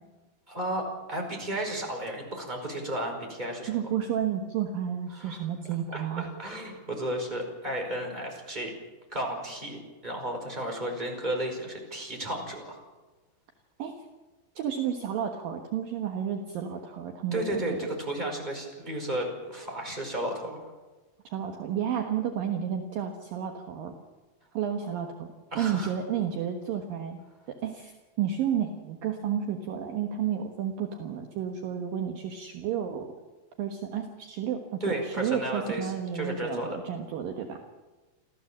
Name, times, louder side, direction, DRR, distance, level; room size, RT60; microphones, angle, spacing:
voice 1, 0.5-3.7 5.1-5.4 5.6-8.7 9.1-12.8 17.3-20.7 25.5-25.9 34.8-36.8, right 1 dB, 10° right, 2 dB, 4.3 m, -33 dB
voice 2, 3.7-6.3 13.8-14.0 14.6-17.6 21.3-23.9 24.5-27.2 27.5-33.1 33.6-37.6, right 8 dB, 70° right, 3 dB, 2.1 m, -31 dB
28.5 x 14.5 x 7.4 m, 1.2 s
omnidirectional pair, 5.9 m